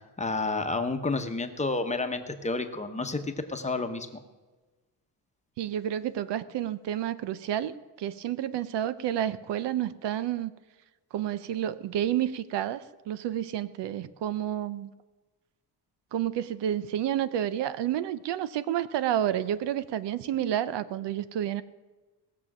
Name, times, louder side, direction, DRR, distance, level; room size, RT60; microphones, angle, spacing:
voice 1, 0.2-4.1, left 3 dB, 15° left, 6 dB, 1.0 m, -30 dB
voice 2, 5.6-10.5 11.1-14.9 16.1-21.6, right 11 dB, 80° right, 15 dB, 0.7 m, -30 dB
18.5 x 7.0 x 6.1 m, 1.2 s
cardioid pair, 135°, 42 cm